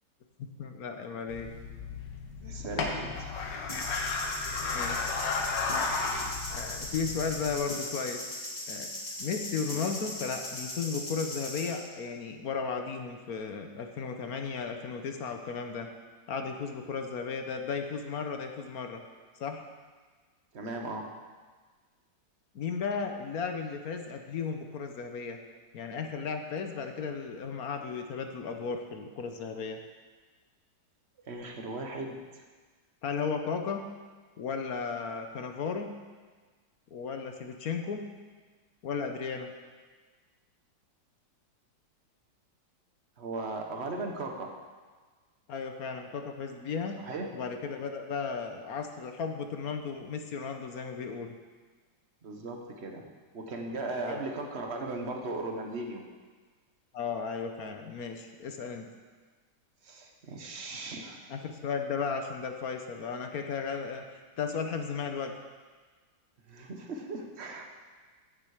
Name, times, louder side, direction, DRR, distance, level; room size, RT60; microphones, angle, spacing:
voice 1, 0.4-1.5 4.7-5.1 6.5-8.2 8.7-8.9 9.2-15.9 16.3-19.0 19.4-19.6 22.5-25.4 25.7-29.8 33.0-33.9 34.4-35.9 36.9-38.0 38.8-39.5 45.5-47.0 47.3-51.3 53.9-54.2 56.9-58.9 61.3-65.3, left 5 dB, 60° left, 5 dB, 1.3 m, -35 dB
sound 1, 1.3-7.5, left 4 dB, 80° left, 1.9 m, -34 dB
voice 2, 2.4-3.4 20.5-21.1 31.3-32.4 43.2-44.6 47.0-47.4 52.2-53.1 53.3-56.0 59.8-61.3 66.5-67.7, right 2 dB, 40° right, 3 dB, 1.4 m, -37 dB
sound 2, 3.7-11.8, left 1 dB, 25° left, 1.7 m, -39 dB
15.5 x 7.3 x 4.9 m, 1.4 s
omnidirectional pair, 1.9 m